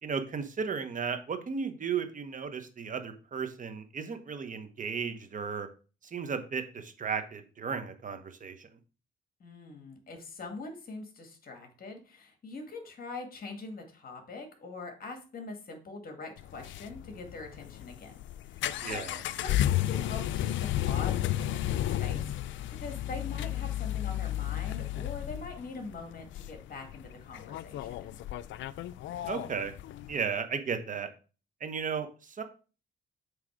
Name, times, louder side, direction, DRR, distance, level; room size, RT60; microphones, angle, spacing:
voice 1, 0.0-5.7 6.0-8.7 18.8-19.2 29.3-29.7 30.1-31.1 31.6-32.4, right 6 dB, 40° right, 8 dB, 1.2 m, -35 dB
voice 2, 9.4-19.0 19.4-28.2, left 3 dB, 45° left, 4 dB, 2.0 m, -43 dB
sound 1, 16.4-30.2, left 13 dB, 75° left, 0.4 m, -33 dB
7.6 x 3.3 x 5.0 m, 0.35 s
cardioid pair, 90°, 20 cm